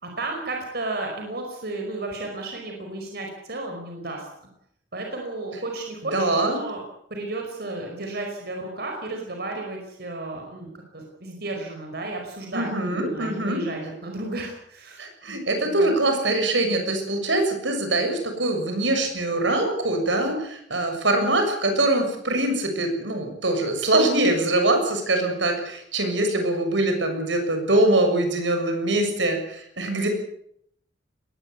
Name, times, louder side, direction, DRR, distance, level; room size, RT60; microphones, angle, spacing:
voice 1, 0.0-4.3 4.9-6.8 7.1-15.0 15.3-15.4 15.6-15.9, right 2 dB, 60° right, 2 dB, 5.2 m, -33 dB
voice 2, 6.1-6.6 12.5-13.6 15.0-30.1, right 2 dB, 80° right, 5 dB, 6.9 m, -23 dB
21.5 x 19.0 x 8.4 m, 0.69 s
head